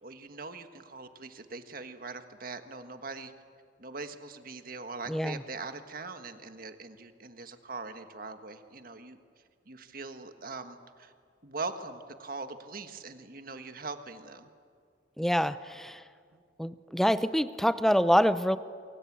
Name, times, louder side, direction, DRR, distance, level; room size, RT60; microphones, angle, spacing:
voice 1, 0.0-3.3 3.8-9.2 9.7-11.1 11.4-14.5 16.3-16.4, right 3 dB, 50° right, 8 dB, 1.6 m, -41 dB
voice 2, 5.1-5.4 15.2-16.0 16.6-18.6, equal, ahead, 13 dB, 0.6 m, -26 dB
28.0 x 23.5 x 8.7 m, 2.2 s
head